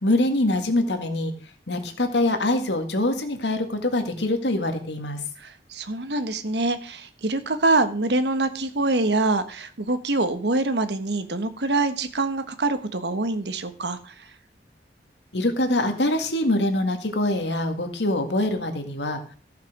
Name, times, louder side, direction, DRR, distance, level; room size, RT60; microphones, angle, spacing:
voice 1, 0.0-1.3 1.7-5.2 15.3-19.3, left 1 dB, 85° left, 6 dB, 2.0 m, -24 dB
voice 2, 5.4-14.1, right 2 dB, 75° right, 10 dB, 1.3 m, -25 dB
14.5 x 5.9 x 6.1 m, 0.42 s
head